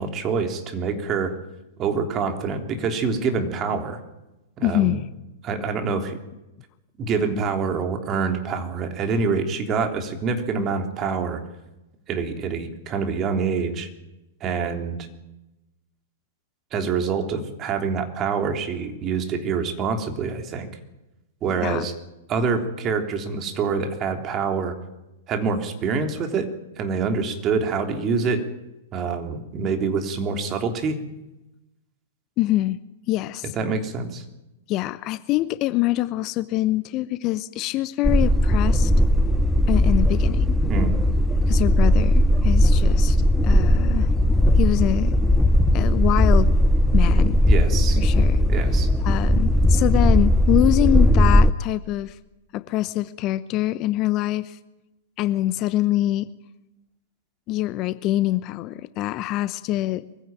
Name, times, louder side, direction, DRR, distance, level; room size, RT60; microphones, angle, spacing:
voice 1, 0.0-1.3 1.8-4.0 4.6-5.0 5.4-6.2 7.0-11.4 12.1-13.9 14.4-15.0 16.7-20.7 21.4-21.9 22.3-24.7 25.3-26.5 26.8-28.5 28.9-31.0 33.5-34.2 40.7-41.0 47.4-48.0 48.5-48.9, right 5 dB, 30° right, 5 dB, 3.4 m, -26 dB
voice 2, 4.6-5.0 21.6-21.9 32.4-32.8 33.1-33.5 34.7-38.9 39.7-40.5 41.5-43.2 43.4-44.1 44.6-45.2 45.7-46.5 46.9-47.4 48.0-48.4 49.0-52.1 52.5-54.6 55.2-56.3 57.5-60.2, left 15 dB, 35° left, 15 dB, 0.8 m, -24 dB
sound 1, 38.0-51.5, equal, 5° left, 0.9 m, -18 dB
23.0 x 16.0 x 9.2 m, 0.98 s
figure-of-eight pair, 105°, 0 cm